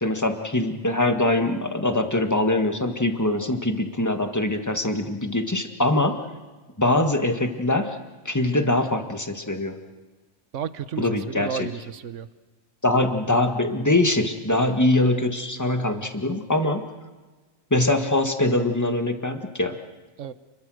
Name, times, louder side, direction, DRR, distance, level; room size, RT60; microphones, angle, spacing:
voice 1, 0.0-6.2 6.8-8.0 8.3-9.8 11.0-11.7 12.8-16.8 17.7-19.8, left 2 dB, 15° left, 6 dB, 1.8 m, -23 dB
voice 2, 10.5-12.3 20.2-20.3, right 8 dB, 80° right, 14 dB, 1.3 m, -32 dB
29.5 x 22.5 x 6.5 m, 1.3 s
omnidirectional pair, 1.3 m